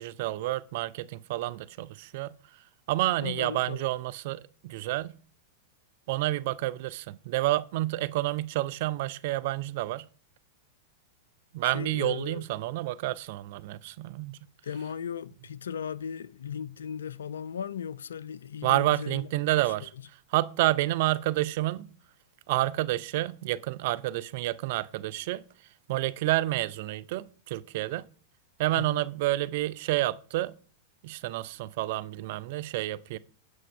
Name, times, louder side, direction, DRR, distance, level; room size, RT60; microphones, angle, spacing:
voice 1, 0.0-2.3 2.9-5.1 6.1-10.1 11.5-14.4 18.6-19.9 20.3-21.9 22.5-25.4 25.9-28.1 28.6-30.5 31.0-33.2, right 16 dB, 50° right, 0.3 m, -29 dB
voice 2, 3.2-3.9 11.6-12.5 14.6-19.3 28.8-29.0, left 8 dB, 65° left, 0.3 m, -37 dB
7.9 x 6.0 x 3.3 m
figure-of-eight pair, 95°, 0 cm